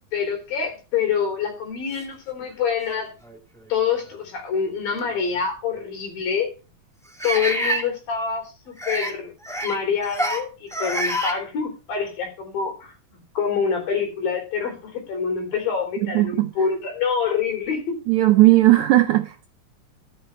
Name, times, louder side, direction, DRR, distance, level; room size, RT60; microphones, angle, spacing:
voice 1, 0.1-3.1 3.7-6.5 7.2-9.3 9.6-18.0, left 6 dB, 80° left, 5.6 m, -26 dB
sound 1, 2.4-2.5 3.2-3.4 5.0-5.1 7.2-7.8 8.8-9.1 9.4-9.8 10.0-10.4 10.7-11.3, right 1 dB, ahead, 1.3 m, -26 dB
voice 2, 16.0-16.5 18.1-19.5, right 16 dB, 80° right, 1.7 m, -17 dB
12.5 x 6.6 x 5.6 m
omnidirectional pair, 4.0 m